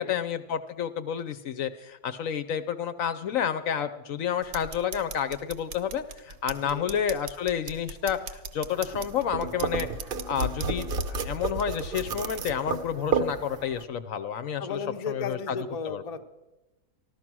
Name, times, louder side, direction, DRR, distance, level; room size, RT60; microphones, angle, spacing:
voice 1, 0.0-9.9 10.3-14.8 15.1-15.6 15.9-16.0, left 8 dB, 70° left, 9 dB, 1.0 m, -30 dB
sound 1, 4.4-12.4, right 5 dB, 75° right, 1.4 m, -42 dB
voice 2, 6.5-6.9 14.6-16.2, left 5 dB, 35° left, 7 dB, 0.8 m, -35 dB
sound 2, 8.7-13.8, right 4 dB, 50° right, 0.8 m, -31 dB
15.0 x 12.5 x 6.1 m, 1.0 s
omnidirectional pair, 1.5 m